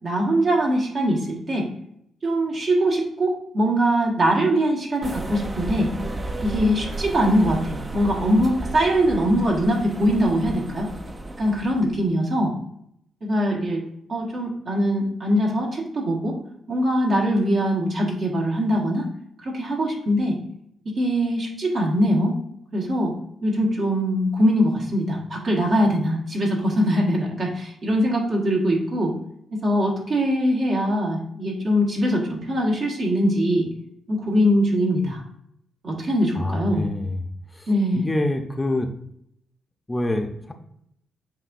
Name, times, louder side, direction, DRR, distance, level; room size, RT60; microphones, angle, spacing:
voice 1, 0.0-1.7 2.2-5.9 6.4-10.9 11.4-12.5 13.2-13.8 14.1-16.3 16.7-19.0 19.4-20.4 21.0-22.3 22.7-23.1 23.4-29.1 29.5-33.7 34.1-35.2 35.8-36.9 37.7-38.1, equal, 55° right, -2 dB, 1.4 m, -22 dB
sound 1, 5.0-12.0, right 2 dB, 30° right, 0.6 m, -33 dB
voice 2, 36.4-37.2 37.6-37.7 37.9-38.9 39.9-40.5, left 1 dB, 20° left, 4 dB, 0.7 m, -26 dB
7.6 x 2.6 x 2.5 m, 0.73 s
hypercardioid pair, 50°, 0 cm